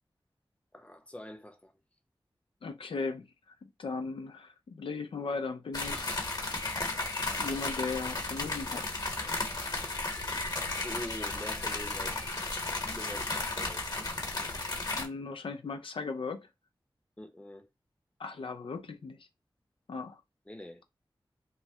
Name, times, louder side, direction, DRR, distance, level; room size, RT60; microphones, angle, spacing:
voice 1, 0.7-1.7 10.8-12.5 12.9-13.9 17.2-17.7 20.5-20.8, left 1 dB, 15° left, 0.7 m, -44 dB
voice 2, 2.6-3.3 3.6-6.2 7.4-9.0 14.9-16.5 18.2-19.3 19.9-20.2, left 4 dB, 80° left, 0.4 m, -37 dB
sound 1, 5.7-15.1, left 2 dB, 45° left, 1.0 m, -34 dB
3.1 x 2.2 x 2.7 m
cardioid pair, 45°, 9 cm